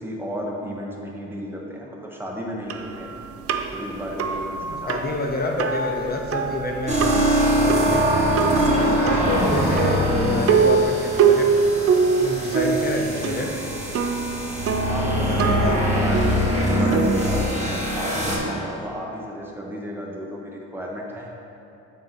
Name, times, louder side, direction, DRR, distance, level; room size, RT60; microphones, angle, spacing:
voice 1, 0.0-3.1 3.7-5.0 9.0-9.4 14.8-21.3, equal, 5° right, -2 dB, 1.0 m, -33 dB
sound 1, 2.7-18.0, right 5 dB, 50° right, 0.5 m, -24 dB
voice 2, 4.6-8.1 8.7-11.5 12.0-13.6 14.9-16.1, left 2 dB, 30° left, 0 dB, 0.6 m, -28 dB
sound 2, 6.9-18.4, equal, 20° right, 1.4 m, -23 dB
7.4 x 2.8 x 5.9 m, 2.8 s
cardioid pair, 90°, 30 cm